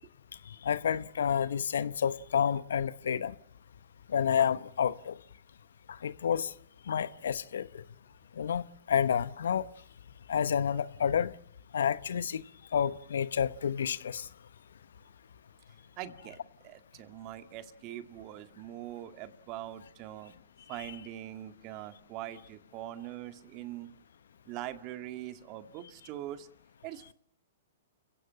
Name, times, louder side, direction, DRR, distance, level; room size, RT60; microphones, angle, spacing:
voice 1, 0.5-3.3 4.1-5.2 5.9-6.5 6.9-7.8 8.4-9.7 10.3-11.3 11.7-12.4 12.7-14.3, left 8 dB, 75° left, 1.0 m, -29 dB
voice 2, 16.0-20.3 20.7-23.9 24.5-26.5 26.8-27.1, right 13 dB, 40° right, 2.0 m, -42 dB
30.0 x 16.5 x 7.5 m
hypercardioid pair, 120°, 0 cm